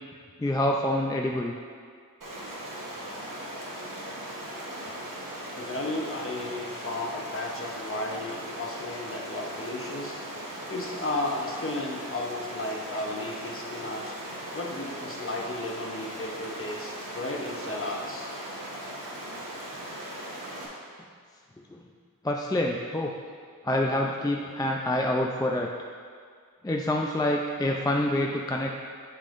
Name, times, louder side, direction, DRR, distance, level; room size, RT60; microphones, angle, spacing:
voice 1, 0.4-1.5 22.2-23.1 23.6-25.7 26.6-28.7, left 1 dB, 10° left, 0 dB, 0.4 m, -26 dB
Stream, 2.2-20.7, right 1 dB, 65° right, 1.3 m, -38 dB
voice 2, 5.5-10.2 10.7-14.2 14.5-18.3, left 2 dB, 40° left, -1 dB, 1.0 m, -34 dB
8.3 x 5.5 x 2.6 m, 2.1 s
wide cardioid pair, 60°, 34 cm